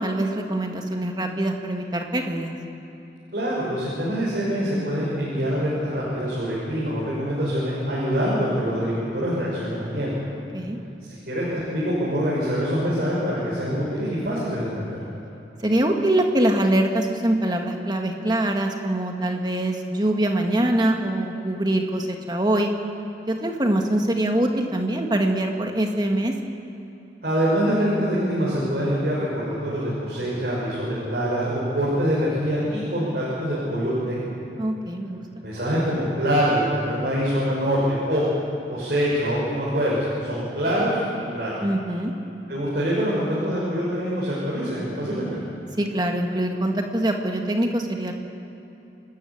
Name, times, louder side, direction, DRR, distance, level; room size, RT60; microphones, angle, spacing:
voice 1, 0.0-2.5 10.5-10.8 15.6-22.7 23.3-26.3 34.6-35.2 41.6-42.1 45.8-48.1, right 1 dB, 25° right, 3 dB, 1.7 m, -23 dB
voice 2, 3.3-10.1 11.1-15.0 27.2-34.3 35.4-38.3 38.7-41.5 42.5-45.4, equal, 55° right, -7 dB, 6.0 m, -25 dB
28.5 x 13.0 x 8.6 m, 2.9 s
head